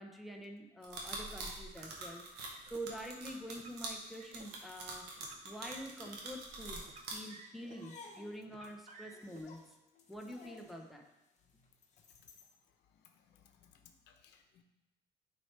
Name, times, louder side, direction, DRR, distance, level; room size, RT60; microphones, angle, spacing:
voice 1, 0.0-9.8 10.1-11.1, equal, ahead, 1 dB, 0.9 m, -47 dB
sound 1, 0.8-7.1, right 3 dB, 90° right, 1.4 m, -44 dB
Car, 1.9-2.8 3.5-4.5 5.2-6.1 6.8-7.9 8.5-9.4, right 4 dB, 45° right, 0.8 m, -57 dB
sound 2, 7.6-12.6, left 4 dB, 45° left, 1.1 m, -57 dB
voice 2, 12.9-14.6, left 8 dB, 80° left, 5 dB, 0.9 m, -65 dB
9.8 x 4.4 x 3.3 m, 0.97 s
cardioid pair, 110°, 17 cm